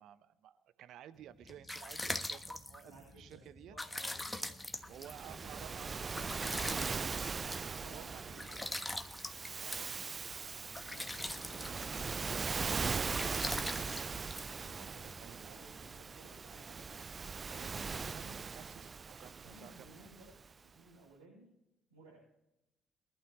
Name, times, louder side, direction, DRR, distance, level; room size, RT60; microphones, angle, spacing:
voice 1, 0.0-3.8 4.9-7.1 7.5-8.7 9.5-10.0 10.5-10.8 14.7-15.6 17.5-20.1, right 11 dB, 60° right, 15 dB, 0.7 m, -54 dB
sound 1, 1.2-15.2, left 1 dB, 10° left, 1.2 m, -44 dB
voice 2, 2.8-4.5 4.8-5.9 7.8-8.6 9.4-9.7 10.8-14.0 14.4-17.0 19.4-20.3 20.6-21.5 21.9-22.2, right 2 dB, 90° right, -11 dB, 6.9 m, -58 dB
Waves surf, 4.9-20.4, right 5 dB, 35° right, 0.4 m, -40 dB
22.5 x 12.0 x 3.1 m, 0.88 s
figure-of-eight pair, 45°, 0 cm